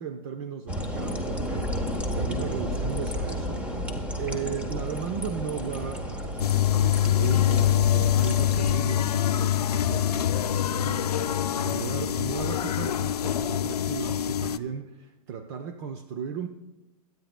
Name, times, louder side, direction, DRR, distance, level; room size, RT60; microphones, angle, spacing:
voice 1, 0.0-3.9 4.1-16.5, right 7 dB, 40° right, 7 dB, 0.8 m, -36 dB
sound 1, 0.7-8.8, equal, 5° right, 1.1 m, -32 dB
sound 2, 6.4-14.6, left 11 dB, 85° left, 0.6 m, -24 dB
23.0 x 9.4 x 2.2 m, 1.0 s
hypercardioid pair, 140°, 19 cm